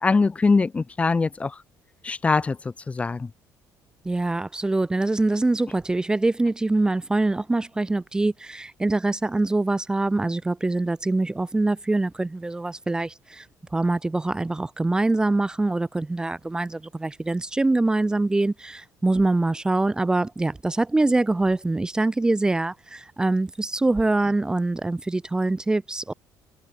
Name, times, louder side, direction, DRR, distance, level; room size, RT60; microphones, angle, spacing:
voice 1, 0.0-1.5 2.0-2.6 2.9-3.3, left 4 dB, 20° left, 1.6 m, -22 dB
voice 2, 4.0-13.5 13.7-26.1, right 2 dB, 10° right, 0.9 m, -24 dB
cardioid pair, 145°, 7 cm